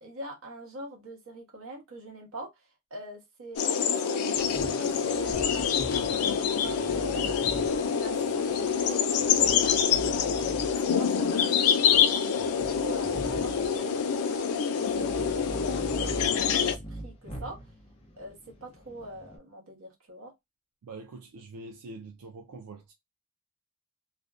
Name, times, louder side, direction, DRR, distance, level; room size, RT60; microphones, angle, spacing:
voice 1, 0.0-2.5 2.9-17.6 18.2-20.3, right 1 dB, 65° right, 0.9 m, -44 dB
sound 1, 3.6-16.8, left 7 dB, 75° left, 0.4 m, -26 dB
sound 2, 4.3-19.4, right 1 dB, 25° left, 0.6 m, -42 dB
voice 2, 20.8-22.9, right 3 dB, 90° right, 0.4 m, -44 dB
2.5 x 2.1 x 2.3 m
head